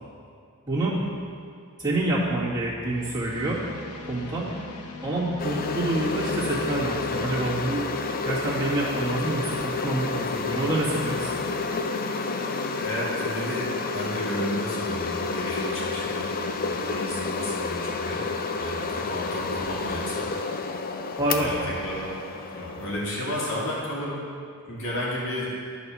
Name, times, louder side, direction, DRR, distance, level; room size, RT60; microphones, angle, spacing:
voice 1, 0.7-1.0 1.8-3.6 4.1-4.5 5.0-7.8 8.2-11.3 21.2-21.5, right 2 dB, 20° right, -9 dB, 2.1 m, -27 dB
sound 1, 0.9-1.3 2.9-8.0 9.8-12.8, left 3 dB, 85° left, 0.8 m, -42 dB
sound 2, 5.4-23.9, left 4 dB, 40° left, 0.5 m, -30 dB
voice 2, 12.8-16.3 16.6-18.2 18.5-20.2 21.4-22.1 22.5-24.2 24.7-25.5, left 1 dB, 60° left, -6 dB, 2.2 m, -32 dB
11.5 x 4.2 x 6.2 m, 2.3 s
head